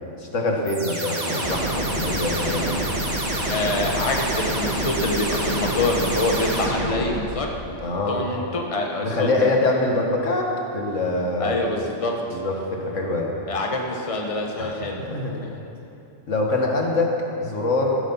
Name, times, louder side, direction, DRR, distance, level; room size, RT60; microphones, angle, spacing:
voice 1, 0.2-2.8 7.8-8.3 9.0-11.6 12.3-13.3 14.6-15.4 16.3-17.1 17.4-18.0, left 2 dB, 85° left, 0 dB, 2.1 m, -24 dB
sound 1, 0.7-7.5, right 1 dB, 35° right, 1.9 m, -26 dB
voice 2, 3.5-7.5 8.1-9.5 11.4-12.4 13.5-15.0, left 2 dB, 30° left, 1 dB, 1.3 m, -26 dB
15.5 x 13.0 x 5.7 m, 2.8 s
omnidirectional pair, 1.3 m